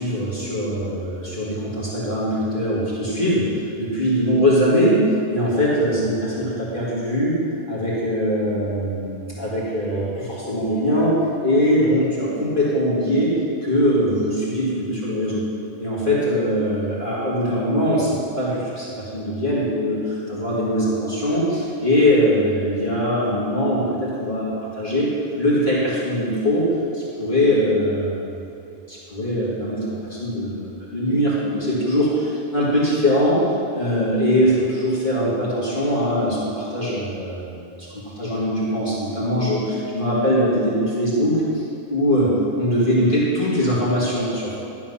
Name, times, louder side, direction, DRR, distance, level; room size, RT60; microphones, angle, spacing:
voice 1, 0.0-3.5 3.8-7.4 7.7-11.2 11.4-13.3 13.6-15.4 15.8-25.1 25.4-26.7 26.9-28.3 28.6-33.4 33.7-44.6, equal, 45° left, -7 dB, 2.3 m, -21 dB
11.5 x 7.5 x 5.6 m, 2.6 s
omnidirectional pair, 1.2 m